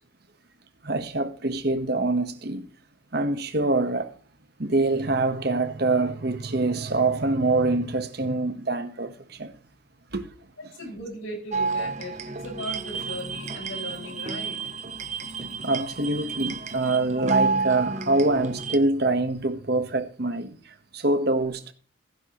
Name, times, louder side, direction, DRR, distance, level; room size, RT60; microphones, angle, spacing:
voice 1, 0.8-2.7 3.1-4.1 4.6-9.5 10.1-10.3 15.6-21.7, right 2 dB, 55° right, 1.2 m, -25 dB
voice 2, 10.6-14.6, equal, 90° left, 5.8 m, -37 dB
sound 1, 11.5-18.8, right 4 dB, 35° right, 0.8 m, -30 dB
16.0 x 9.7 x 3.1 m
head